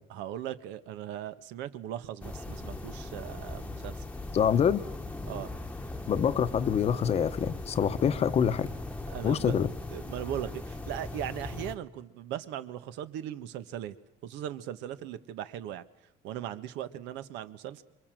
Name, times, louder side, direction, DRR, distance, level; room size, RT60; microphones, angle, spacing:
voice 1, 0.1-4.0 5.2-5.5 9.1-9.6 9.9-14.0 14.2-15.8 16.2-17.8, right 11 dB, 85° right, 1.5 m, -38 dB
sound 1, 2.2-11.8, left 2 dB, 5° left, 1.2 m, -39 dB
voice 2, 4.3-4.8 6.1-8.7 9.2-9.7, left 8 dB, 35° left, 0.9 m, -26 dB
27.5 x 23.5 x 7.7 m
cardioid pair, 155°, 18 cm